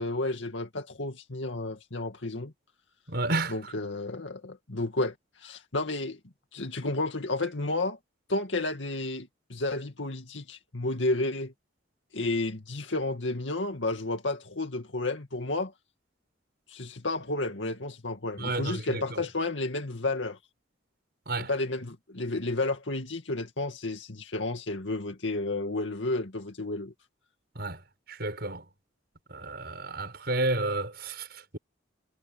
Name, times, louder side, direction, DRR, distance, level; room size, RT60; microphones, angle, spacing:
voice 1, 0.0-2.5 3.5-6.2 6.5-8.0 8.3-11.5 12.1-15.7 16.7-20.4 21.5-26.9, left 2 dB, 70° left, 2.2 m, -31 dB
voice 2, 3.1-3.7 18.4-19.2 21.3-21.5 27.5-27.8 28.1-28.6 29.3-31.6, right 2 dB, 55° right, 6.7 m, -31 dB
head